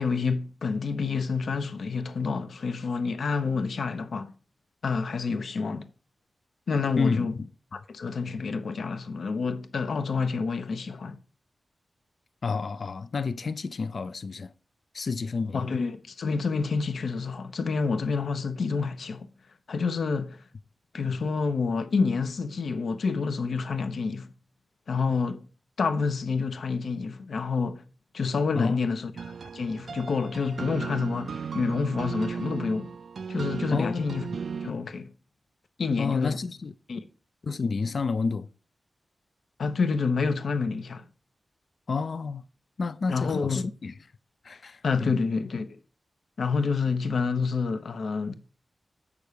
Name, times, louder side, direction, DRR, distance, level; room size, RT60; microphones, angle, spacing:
voice 1, 0.0-4.3 4.8-5.9 6.7-7.4 7.7-11.2 15.5-19.3 19.7-20.4 20.9-24.3 24.9-25.4 25.8-27.8 28.1-32.9 33.3-34.2 34.6-35.1 35.8-36.4 36.9-37.0 39.6-41.1 43.1-43.6 44.8-45.8 46.4-48.3, left 4 dB, 70° left, 1.0 m, -28 dB
voice 2, 7.0-7.5 12.4-14.5 14.9-15.6 28.6-28.8 33.7-34.2 36.0-36.7 37.4-38.5 41.9-42.4 42.8-43.9 44.4-45.1, left 4 dB, 55° left, 0.4 m, -30 dB
sound 1, 29.2-34.7, right 6 dB, 65° right, 0.3 m, -36 dB
8.3 x 6.2 x 5.1 m
wide cardioid pair, 145°, 0 cm